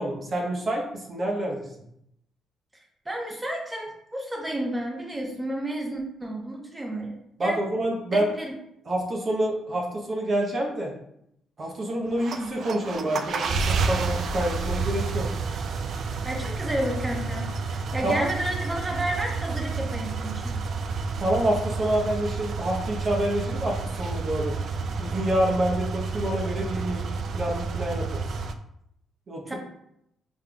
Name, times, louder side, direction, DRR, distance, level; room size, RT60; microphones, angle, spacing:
voice 1, 0.0-1.7 7.4-8.3 8.9-10.9 11.6-15.3 18.0-18.3 21.2-24.6 25.0-27.0 27.3-28.4 29.3-29.5, right 1 dB, 45° right, -1 dB, 0.8 m, -27 dB
voice 2, 3.0-7.1 7.4-7.6 8.1-8.5 16.2-20.5 29.5-29.6, right 1 dB, 15° right, 0 dB, 1.1 m, -31 dB
sound 1, 12.1-28.5, right 4 dB, 60° right, 0.3 m, -30 dB
5.2 x 3.4 x 2.3 m, 0.77 s
cardioid pair, 90°, 0 cm